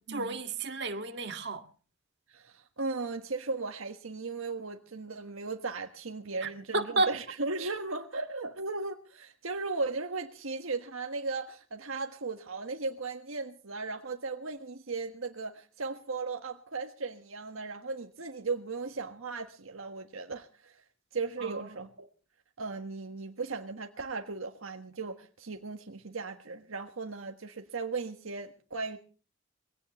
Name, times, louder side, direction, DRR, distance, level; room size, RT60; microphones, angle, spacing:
voice 1, 0.1-1.6 6.4-7.1 21.4-21.8, right 2 dB, 55° right, 1.9 m, -32 dB
voice 2, 2.3-20.8 21.1-22.1 22.6-29.0, right 3 dB, 85° right, 1.5 m, -37 dB
23.0 x 17.0 x 3.1 m
head